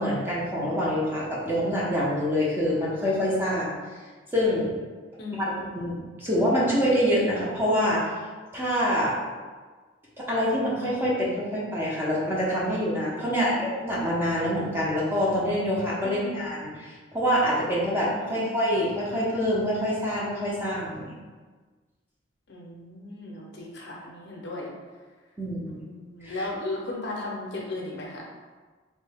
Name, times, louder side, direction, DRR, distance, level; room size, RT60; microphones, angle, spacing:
voice 1, 0.0-3.8 4.3-4.7 5.3-5.4 5.7-8.1 8.5-9.2 10.2-21.1 25.4-25.8 26.2-26.5, equal, 10° right, -6 dB, 0.7 m, -26 dB
voice 2, 0.5-0.8 5.2-5.8 13.2-13.7 16.0-16.6 18.2-18.6 22.5-24.7 25.7-28.2, left 2 dB, 55° left, -2 dB, 0.6 m, -36 dB
3.3 x 2.7 x 3.4 m, 1.4 s
head